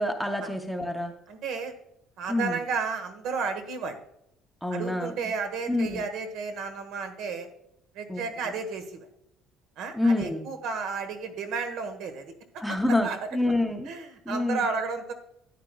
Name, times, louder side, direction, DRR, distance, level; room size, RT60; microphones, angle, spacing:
voice 1, 0.0-1.1 2.3-2.6 4.6-5.1 5.7-6.0 8.1-8.2 9.9-10.5 12.6-13.9 14.3-14.6, left 2 dB, ahead, 4 dB, 0.7 m, -27 dB
voice 2, 1.3-1.7 2.2-4.0 4.7-7.5 7.9-9.1 9.8-13.3 13.8-15.1, right 5 dB, 60° right, 8 dB, 1.3 m, -33 dB
13.0 x 9.5 x 2.3 m, 0.77 s
cardioid pair, 170°, 0 cm